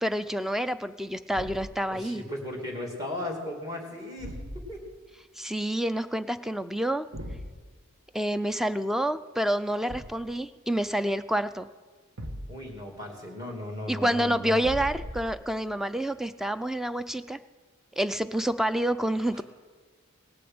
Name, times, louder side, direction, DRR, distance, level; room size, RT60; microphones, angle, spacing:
voice 1, 0.0-2.2 5.4-7.1 8.1-11.7 13.9-17.4 18.0-19.4, right 1 dB, ahead, 12 dB, 0.4 m, -28 dB
Thump thud, 1.3-1.8 4.2-4.9 7.1-7.6 9.9-10.4 12.2-12.8 14.6-15.6, equal, 75° right, 1.3 m, -39 dB
voice 2, 1.9-4.3 4.7-4.8 12.5-14.6 19.3-19.4, left 1 dB, 15° right, 1 dB, 2.5 m, -36 dB
18.0 x 8.6 x 7.8 m, 1.4 s
head